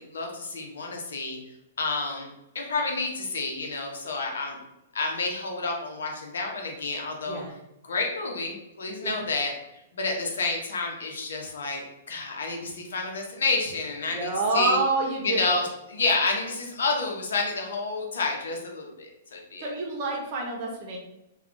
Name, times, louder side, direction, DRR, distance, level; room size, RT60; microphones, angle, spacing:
voice 1, 0.0-1.4 1.8-4.6 4.9-7.4 7.8-9.5 9.9-14.8 15.2-19.7, left 3 dB, 90° left, 1 dB, 0.8 m, -29 dB
voice 2, 14.1-15.5 19.6-21.0, right 3 dB, 35° right, 0 dB, 0.7 m, -27 dB
2.3 x 2.3 x 3.8 m, 0.87 s
hypercardioid pair, 165°, 0 cm